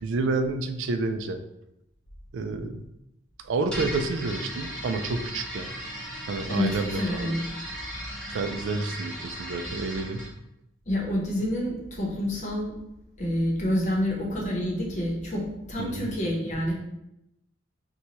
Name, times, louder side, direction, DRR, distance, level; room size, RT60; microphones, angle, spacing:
voice 1, 0.0-1.4 2.3-2.8 3.4-5.7 6.3-7.3 8.3-10.2 15.8-16.1, right 3 dB, 65° right, 7 dB, 0.3 m, -29 dB
sound 1, 3.7-10.3, equal, 5° left, 1.0 m, -36 dB
voice 2, 6.5-7.4 10.9-12.7 13.2-15.4 15.7-16.7, left 1 dB, 35° left, -3 dB, 0.8 m, -28 dB
4.2 x 2.2 x 2.9 m, 0.86 s
head